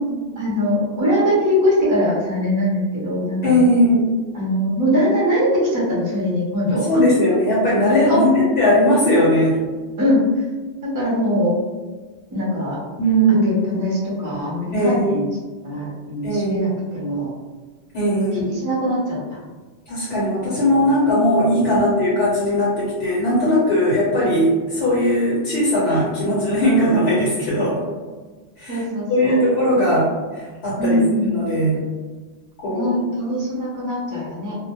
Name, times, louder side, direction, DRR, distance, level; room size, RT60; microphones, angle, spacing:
voice 1, 0.1-3.7 4.3-6.8 8.0-8.2 10.0-10.3 10.9-11.6 12.3-12.8 13.4-15.3 15.6-17.3 18.3-19.4 21.7-21.9 28.7-29.4 30.8-31.5 32.7-34.6, equal, 25° right, -5 dB, 0.4 m, -22 dB
voice 2, 3.4-4.1 6.7-8.3 8.6-9.6 13.0-13.6 14.7-15.2 16.2-16.8 17.9-18.5 19.9-27.8 28.6-28.8 29.1-30.1 30.6-31.0 31.3-31.8 32.6-32.9, equal, 60° left, -6 dB, 0.9 m, -18 dB
2.1 x 2.1 x 2.8 m, 1.3 s
omnidirectional pair, 1.2 m